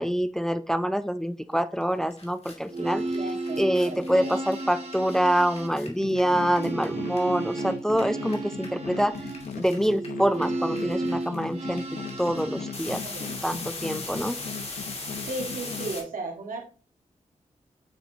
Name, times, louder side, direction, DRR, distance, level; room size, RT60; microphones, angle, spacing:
voice 1, 0.0-3.0 3.6-9.1 9.6-13.0 13.4-14.4, equal, 5° left, 12 dB, 0.5 m, -26 dB
sound 1, 1.8-1.9 2.1-7.6 7.9-16.0, left 3 dB, 50° left, 2.4 m, -39 dB
sound 2, 2.6-12.8, right 2 dB, 50° right, 2.2 m, -33 dB
voice 2, 3.1-4.4 12.9-13.4 15.2-16.6, right 2 dB, 85° right, 1 dB, 2.2 m, -36 dB
sound 3, 6.0-15.9, left 6 dB, 85° left, 0.6 m, -39 dB
9.0 x 6.1 x 2.9 m, 0.38 s
cardioid pair, 65°, 14 cm